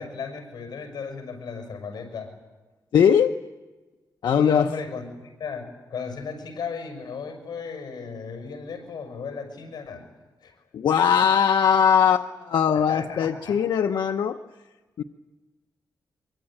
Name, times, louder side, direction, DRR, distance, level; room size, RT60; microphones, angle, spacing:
voice 1, 0.0-2.3 4.2-5.6 5.9-10.0 10.4-10.5 12.7-13.6, left 5 dB, 70° left, 5 dB, 6.1 m, -35 dB
voice 2, 2.9-3.3 4.2-4.7 10.7-14.4 15.0-15.1, left 8 dB, 85° left, 6 dB, 0.8 m, -20 dB
23.5 x 23.5 x 8.9 m, 1.2 s
wide cardioid pair, 130°, 7 cm